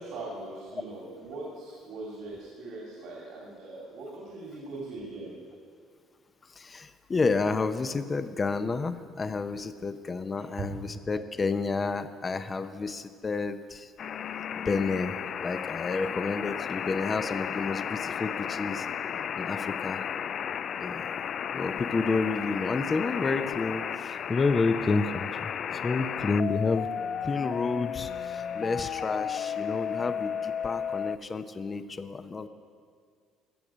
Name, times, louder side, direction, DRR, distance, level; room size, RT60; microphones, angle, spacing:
voice 1, 0.0-5.3 10.6-10.7, right 3 dB, 75° right, -4 dB, 2.9 m, -40 dB
voice 2, 6.4-13.9 14.5-18.9 19.4-20.0 20.8-26.9 27.2-32.5, left 4 dB, 30° left, 11 dB, 0.7 m, -30 dB
sound 1, 14.0-31.2, left 8 dB, 50° left, 0.3 m, -33 dB
16.0 x 6.6 x 6.3 m, 2.1 s
supercardioid pair, 90°, 0 cm